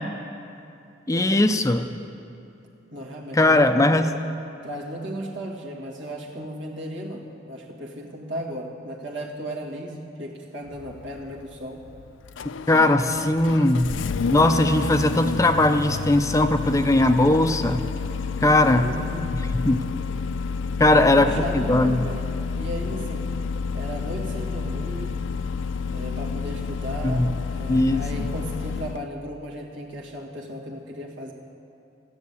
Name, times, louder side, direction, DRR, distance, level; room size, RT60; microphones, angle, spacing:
voice 1, 1.1-1.9 3.3-4.1 12.7-13.9 14.3-17.8 18.4-18.9 19.6-19.8 20.8-22.0 27.0-27.3 27.7-28.3, left 2 dB, 15° left, 8 dB, 0.5 m, -19 dB
voice 2, 2.9-4.1 4.6-11.8 18.8-19.4 20.9-22.3 22.5-23.4 23.7-25.2 25.9-31.3, equal, 80° right, -1 dB, 2.0 m, -35 dB
Engine starting, 10.7-29.1, left 5 dB, 80° left, 0.4 m, -30 dB
14.0 x 9.6 x 8.4 m, 2.7 s
head